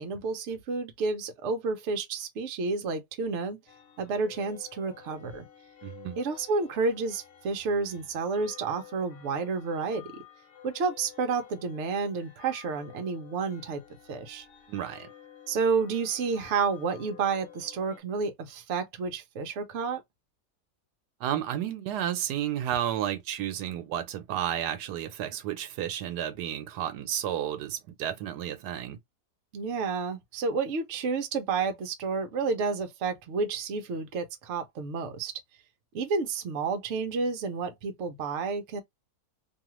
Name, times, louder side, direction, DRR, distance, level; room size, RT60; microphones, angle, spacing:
voice 1, 0.0-3.6 4.0-5.5 6.2-10.1 10.6-13.8 14.1-14.5 15.5-20.0 29.5-35.3 35.9-38.8, right 4 dB, 60° right, 0.9 m, -30 dB
sound 1, 3.7-18.0, left 10 dB, 65° left, 1.2 m, -52 dB
voice 2, 5.8-6.2 14.7-15.1 21.2-29.0, right 11 dB, 90° right, 1.2 m, -32 dB
2.7 x 2.3 x 2.9 m
omnidirectional pair, 1.7 m